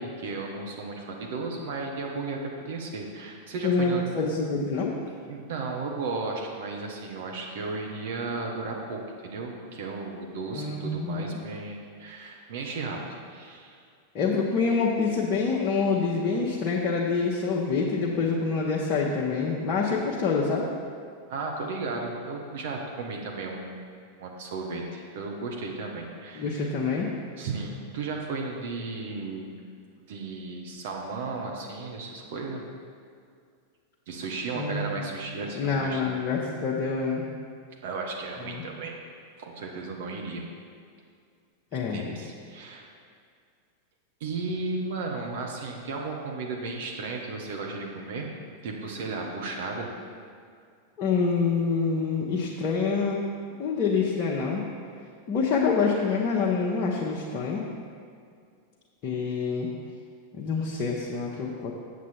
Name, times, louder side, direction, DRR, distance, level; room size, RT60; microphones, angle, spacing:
voice 1, 0.0-2.4 2.7-4.0 5.3-13.8 21.3-23.8 24.2-26.7 27.4-29.5 30.1-32.6 34.1-36.2 37.8-38.9 39.4-40.4 41.7-42.9 44.2-48.3 48.6-49.9, right 3 dB, 55° right, 0 dB, 1.0 m, -34 dB
voice 2, 3.6-4.9 10.5-11.4 14.1-20.7 26.3-27.1 34.6-35.0 35.5-37.2 38.4-38.6 41.7-42.1 51.0-53.2 53.6-54.7 55.3-57.6 59.0-59.7 60.3-61.7, left 4 dB, 35° left, -4 dB, 0.9 m, -26 dB
7.9 x 7.4 x 4.3 m, 2.2 s
figure-of-eight pair, 90°, 0 cm